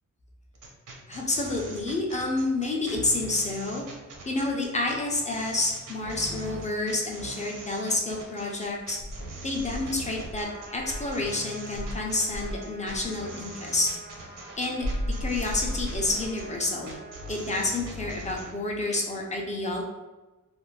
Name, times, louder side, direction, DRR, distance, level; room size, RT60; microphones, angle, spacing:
sound 1, 0.5-18.5, right 2 dB, 80° right, 0.7 m, -42 dB
voice 1, 1.1-3.8 4.3-9.0 9.4-10.5 10.7-13.9 14.6-16.9 17.3-19.8, left 2 dB, 25° left, -1 dB, 0.4 m, -29 dB
Insect, 9.0-11.3 11.7-13.2 14.8-16.5, equal, 85° left, 0.7 m, -34 dB
Trumpet, 10.4-17.6, right 2 dB, 35° right, 0.4 m, -47 dB
2.5 x 2.4 x 3.1 m, 1.2 s
wide cardioid pair, 150°, 31 cm